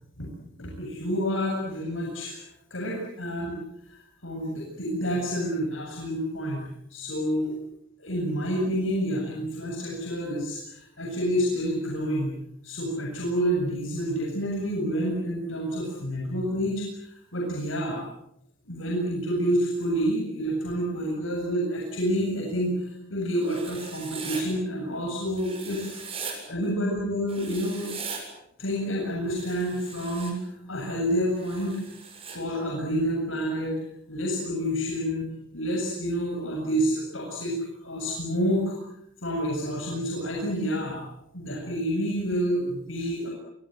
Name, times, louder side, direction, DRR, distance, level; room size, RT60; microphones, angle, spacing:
voice 1, 0.6-2.4 2.7-7.5 8.0-12.4 12.6-18.0 18.6-26.0 26.5-27.9 28.6-31.8 32.3-33.8 34.1-37.6 37.8-38.8 39.2-41.0 41.3-43.3, equal, 85° left, -1 dB, 7.6 m, -28 dB
Writing, 23.4-24.4 25.4-26.3 27.3-28.2 29.3-30.3 31.3-32.4, right 5 dB, 30° right, 7.3 m, -39 dB
27.5 x 24.0 x 7.8 m, 0.77 s
head